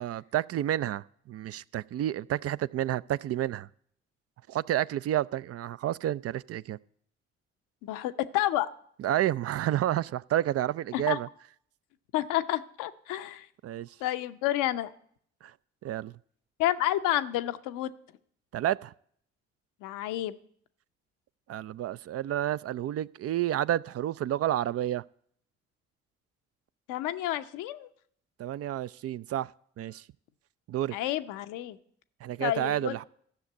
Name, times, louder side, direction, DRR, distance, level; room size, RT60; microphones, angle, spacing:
voice 1, 0.0-3.7 4.5-6.8 9.0-11.3 13.6-13.9 15.4-15.5 15.8-16.2 18.5-18.9 21.5-25.0 28.4-29.5 29.8-30.0 30.7-31.0 32.2-33.0, right 12 dB, 50° right, 0.4 m, -30 dB
voice 2, 7.8-8.7 10.9-11.2 12.1-13.5 14.0-14.9 16.6-17.9 19.8-20.3 26.9-27.9 30.9-31.8 32.4-33.0, left 14 dB, 75° left, 0.7 m, -30 dB
13.0 x 6.5 x 8.2 m
hypercardioid pair, 40°, 32 cm